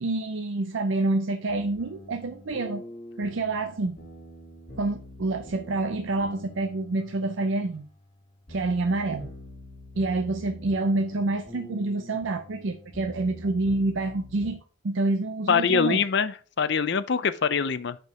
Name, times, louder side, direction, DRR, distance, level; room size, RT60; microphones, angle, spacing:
voice 1, 0.0-2.8 3.2-4.0 4.8-7.9 8.5-9.3 10.0-14.6 14.8-16.0, right 2 dB, 70° right, 0.5 m, -27 dB
sound 1, 1.5-14.5, equal, 35° left, 3.8 m, -45 dB
voice 2, 15.5-18.0, left 6 dB, 55° left, 0.5 m, -24 dB
6.5 x 5.3 x 4.7 m
head